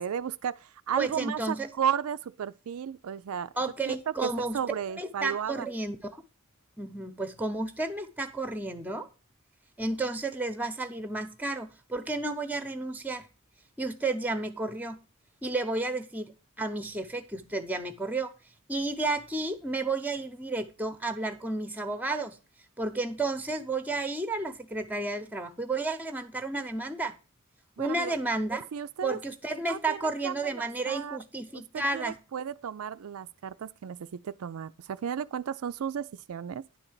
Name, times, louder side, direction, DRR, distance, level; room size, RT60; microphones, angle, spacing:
voice 1, 0.0-3.5 3.9-4.0 4.2-5.7 27.8-28.2 28.7-29.2 29.7-31.2 31.7-36.6, right 8 dB, 80° right, 0.4 m, -34 dB
voice 2, 1.0-1.7 3.6-4.6 5.0-6.2 6.8-9.1 9.8-13.3 13.8-15.0 15.4-18.3 18.7-22.4 22.8-27.1 27.8-28.6 29.0-32.2, right 2 dB, 10° right, 0.8 m, -32 dB
10.0 x 3.9 x 7.3 m
head